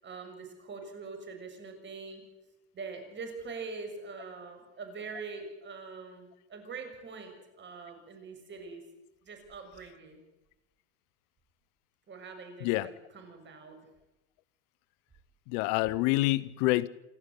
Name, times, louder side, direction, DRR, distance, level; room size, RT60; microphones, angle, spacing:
voice 1, 0.0-2.2 2.7-8.8 9.2-10.2 12.1-13.8, right 4 dB, 35° right, 5 dB, 6.5 m, -43 dB
voice 2, 15.5-16.9, left 19 dB, 65° left, 20 dB, 0.9 m, -27 dB
28.0 x 12.5 x 8.4 m, 0.97 s
supercardioid pair, 100°, 34 cm